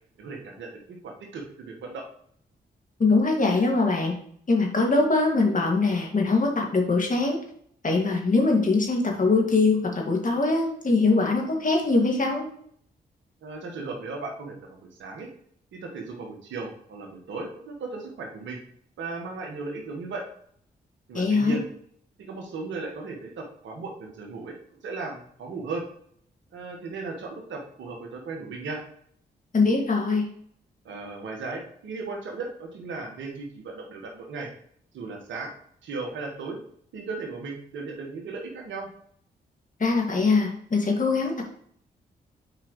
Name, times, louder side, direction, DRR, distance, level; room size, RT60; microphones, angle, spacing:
voice 1, 0.2-2.0 13.4-15.3 15.7-18.6 19.0-20.2 21.1-21.7 22.2-24.5 24.8-25.9 26.5-28.8 30.8-34.5 34.9-35.5 35.8-36.6 36.9-38.9, right 3 dB, 80° right, 1 dB, 1.6 m, -36 dB
voice 2, 3.0-4.1 4.5-7.4 7.8-12.5 21.1-21.6 29.5-30.3 39.8-41.4, left 3 dB, 45° left, 1 dB, 2.1 m, -22 dB
7.4 x 4.9 x 3.1 m, 0.64 s
supercardioid pair, 45°, 19 cm